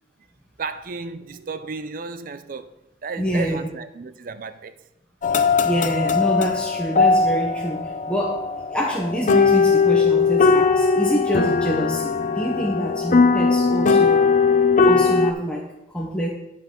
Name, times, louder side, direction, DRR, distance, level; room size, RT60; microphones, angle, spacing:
voice 1, 0.6-2.7 3.0-4.7, right 4 dB, 50° right, 0.5 m, -33 dB
voice 2, 3.2-3.6 5.6-14.4 14.8-16.3, equal, 5° left, 0.9 m, -26 dB
sound 1, 5.2-15.3, left 4 dB, 45° left, 0.5 m, -19 dB
11.5 x 5.2 x 3.7 m
head